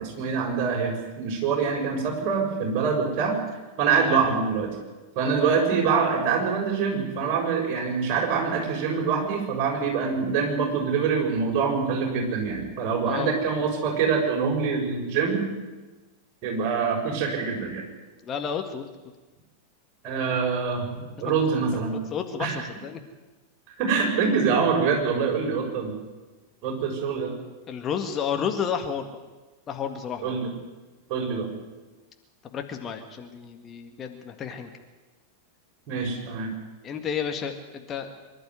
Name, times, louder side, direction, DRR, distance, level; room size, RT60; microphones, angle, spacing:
voice 1, 0.0-3.3 3.8-4.7 5.1-15.5 16.4-17.8 20.0-21.9 22.4-22.6 23.8-26.0 26.6-27.3 30.2-30.5 31.1-31.5 35.9-36.5, right 5 dB, 40° right, 0 dB, 6.7 m, -25 dB
voice 2, 18.2-18.8 21.2-21.6 21.9-23.0 27.7-29.2 29.7-30.3 32.4-34.7 36.8-38.1, left 7 dB, 25° left, 5 dB, 1.9 m, -31 dB
24.5 x 11.5 x 9.5 m, 1.2 s
figure-of-eight pair, 90°, 0 cm